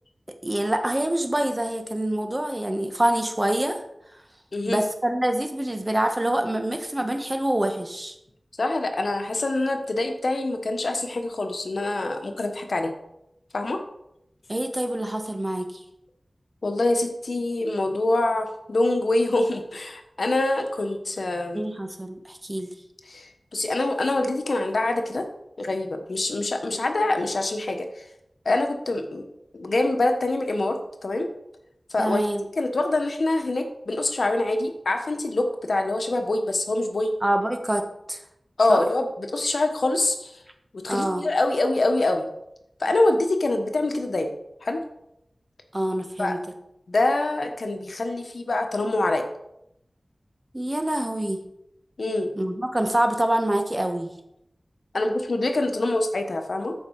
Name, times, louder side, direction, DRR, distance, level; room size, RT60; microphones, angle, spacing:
voice 1, 0.4-3.8 4.7-8.1 14.5-15.8 21.5-22.7 26.7-26.8 32.0-32.4 37.2-38.2 38.7-38.8 40.9-41.3 45.7-46.4 50.5-51.4 52.4-54.1, right 1 dB, 30° right, 6 dB, 1.4 m, -26 dB
voice 2, 8.6-12.9 13.5-13.8 16.6-21.6 23.1-25.2 25.6-28.0 28.4-29.3 29.5-30.8 31.0-31.3 31.9-32.3 32.6-37.1 38.6-40.4 40.7-42.3 42.8-44.3 44.6-44.8 46.2-46.4 46.9-49.3 52.0-52.3 54.9-56.7, left 2 dB, 85° left, 5 dB, 1.2 m, -25 dB
13.5 x 5.3 x 4.8 m, 0.81 s
wide cardioid pair, 45°, 0 cm